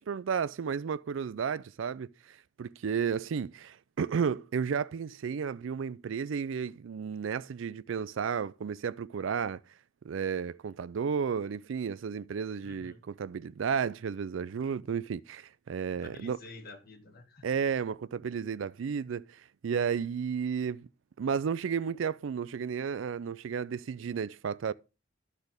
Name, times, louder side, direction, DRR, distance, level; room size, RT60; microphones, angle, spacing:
voice 1, 0.0-9.6 10.0-16.4 17.4-20.9 21.2-24.7, right 6 dB, 70° right, 0.4 m, -33 dB
voice 2, 12.6-13.0 15.9-17.6, left 2 dB, 50° left, 1.6 m, -49 dB
12.0 x 4.2 x 5.0 m
head